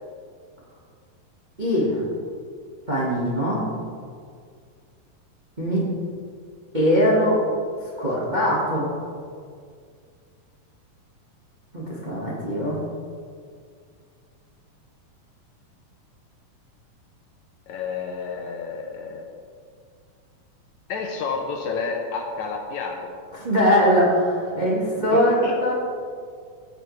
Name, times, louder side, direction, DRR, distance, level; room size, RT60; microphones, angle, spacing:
voice 1, 1.6-2.0 2.9-3.6 5.6-5.9 6.7-7.4 8.0-8.9 11.7-12.8 23.3-25.3 25.6-25.7, equal, 80° right, -6 dB, 0.4 m, -21 dB
voice 2, 17.7-19.3 20.9-23.1 25.1-25.6, left 4 dB, 75° left, 1 dB, 1.8 m, -30 dB
15.5 x 6.6 x 3.2 m, 2.2 s
omnidirectional pair, 3.9 m